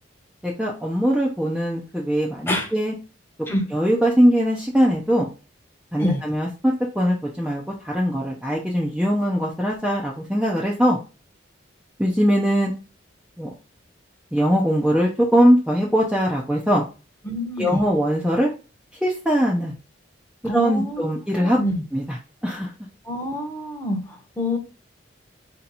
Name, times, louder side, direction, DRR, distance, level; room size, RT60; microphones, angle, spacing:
voice 1, 0.4-2.9 3.7-5.3 5.9-11.0 12.0-12.7 13.4-13.5 14.3-16.8 17.6-18.5 19.0-19.7 20.5-21.6 21.9-22.2 22.4-22.7, equal, 5° right, -3 dB, 0.6 m, -21 dB
voice 2, 17.2-17.8 20.4-21.1 21.3-21.8 23.0-24.6, left 1 dB, 10° left, 1 dB, 1.0 m, -27 dB
4.4 x 2.9 x 3.9 m, 0.33 s
head